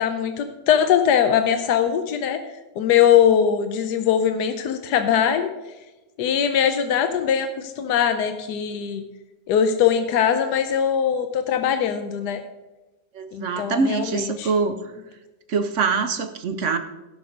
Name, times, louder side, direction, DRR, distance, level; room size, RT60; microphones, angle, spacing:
voice 1, 0.0-2.4 2.8-5.5 6.2-9.0 9.5-12.4 13.3-14.5, left 8 dB, 80° left, 8 dB, 1.3 m, -21 dB
voice 2, 13.1-14.8 15.5-16.8, right 4 dB, 55° right, 9 dB, 1.0 m, -24 dB
16.5 x 6.2 x 5.1 m, 1.1 s
omnidirectional pair, 1.7 m